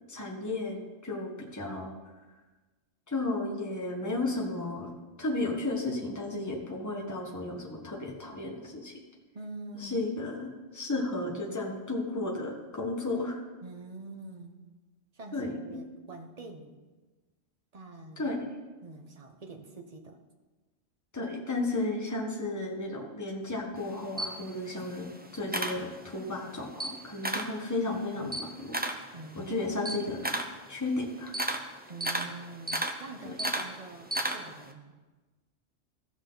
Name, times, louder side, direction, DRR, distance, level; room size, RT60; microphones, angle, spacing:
voice 1, 0.1-1.9 3.1-4.9 5.2-8.9 9.8-13.4 15.3-15.8 18.2-18.4 21.1-28.7 29.3-30.4 30.7-31.3 33.2-33.3, left 2 dB, 15° left, -1 dB, 1.3 m, -33 dB
voice 2, 9.3-10.0 13.6-14.6 15.1-16.8 17.7-18.3 18.8-20.2 29.1-29.5 31.9-34.9, right 2 dB, 35° right, 4 dB, 0.9 m, -45 dB
Camera, 23.8-26.3 26.7-27.6 28.0-34.7, right 1 dB, 15° right, 0.4 m, -34 dB
15.5 x 6.3 x 3.9 m, 1.3 s
omnidirectional pair, 1.3 m